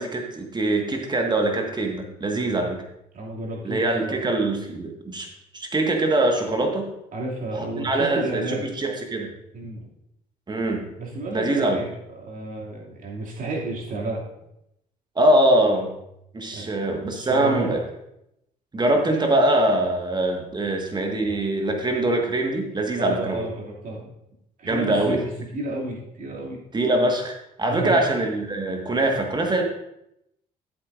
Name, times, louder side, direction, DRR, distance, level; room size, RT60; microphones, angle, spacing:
voice 1, 0.0-2.8 3.6-5.3 5.5-6.9 7.8-9.3 10.5-10.8 11.3-11.8 15.1-15.9 16.3-17.8 18.7-23.5 24.7-25.2 26.7-27.3 27.6-29.6, right 1 dB, 20° right, 3 dB, 1.7 m, -23 dB
voice 2, 3.1-4.2 7.1-8.7 9.5-9.9 11.0-14.3 16.5-16.8 17.1-17.8 23.0-24.1 24.6-26.6 27.7-28.0, right 2 dB, 40° right, -3 dB, 2.7 m, -31 dB
12.0 x 7.9 x 2.6 m, 0.81 s
figure-of-eight pair, 50°, 21 cm